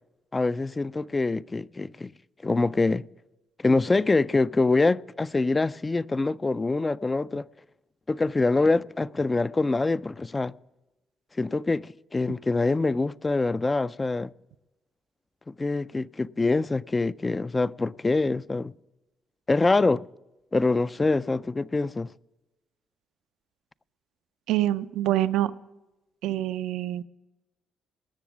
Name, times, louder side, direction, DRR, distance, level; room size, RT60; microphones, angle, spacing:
voice 1, 0.3-2.1 2.4-3.1 3.6-7.4 8.1-10.5 11.4-14.3 15.5-18.7 19.5-20.1 20.5-22.1, left 3 dB, 20° left, 0.3 m, -25 dB
voice 2, 24.5-25.5 26.2-27.0, right 13 dB, 90° right, 0.5 m, -25 dB
19.0 x 7.0 x 6.1 m
cardioid pair, 90°, 0 cm